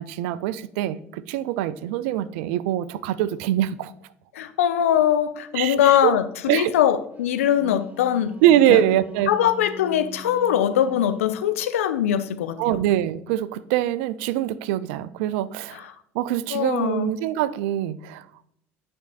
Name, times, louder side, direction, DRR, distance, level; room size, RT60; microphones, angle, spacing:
voice 1, 0.0-3.9 5.5-6.1 6.5-6.7 8.4-9.3 12.6-15.8 16.1-18.3, right 12 dB, 65° right, 0.4 m, -23 dB
voice 2, 4.3-8.3 8.7-8.8 9.3-12.8 15.7-15.9 16.5-17.1, left 10 dB, 75° left, 0.5 m, -22 dB
Wind instrument woodwind instrument, 7.3-11.5, right 2 dB, 20° right, 0.8 m, -42 dB
10.0 x 5.2 x 2.4 m
figure-of-eight pair, 55°, 8 cm